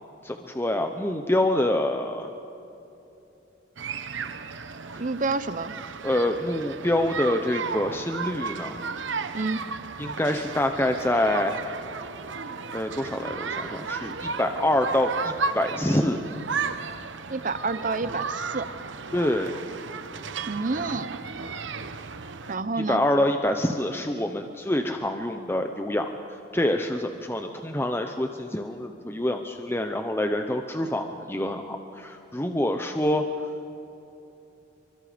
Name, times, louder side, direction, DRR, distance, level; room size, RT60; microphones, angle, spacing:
voice 1, 0.2-2.3 4.9-5.0 6.0-8.8 10.0-11.6 12.7-16.2 19.1-19.6 22.9-26.1 26.5-33.3, left 1 dB, 10° left, 5 dB, 0.8 m, -26 dB
sound 1, 3.8-22.6, right 5 dB, 75° right, 1.0 m, -34 dB
voice 2, 5.0-5.7 9.3-9.6 17.3-18.7 20.5-21.2 22.5-23.0, right 3 dB, 45° right, 13 dB, 0.8 m, -29 dB
25.0 x 24.5 x 5.2 m, 2.9 s
head